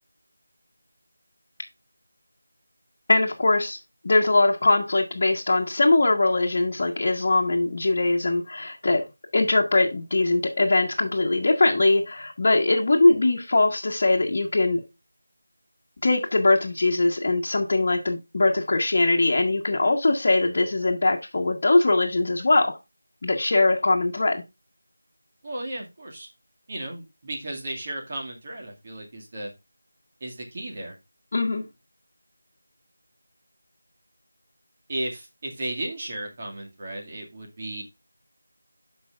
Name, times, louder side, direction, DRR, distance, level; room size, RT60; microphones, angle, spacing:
voice 1, 3.1-3.8 4.0-9.0 9.3-14.8 16.0-22.8 23.2-24.4 31.3-31.6, left 2 dB, 40° left, 1.5 m, -21 dB
voice 2, 25.4-26.3 26.7-29.5 30.2-30.9 34.9-37.8, right 1 dB, 30° right, 2.2 m, -34 dB
12.5 x 5.4 x 2.5 m
figure-of-eight pair, 170°, 0 cm